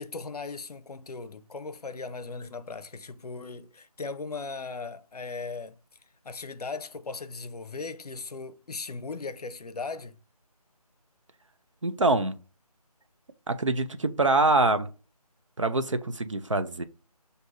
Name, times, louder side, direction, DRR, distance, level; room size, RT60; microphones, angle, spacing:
voice 1, 0.0-5.8 6.2-10.2, left 4 dB, 75° left, 0.6 m, -38 dB
voice 2, 11.8-12.4 13.5-14.9 15.6-16.8, right 2 dB, 50° right, 0.4 m, -24 dB
6.0 x 2.6 x 2.5 m
figure-of-eight pair, 175°, 20 cm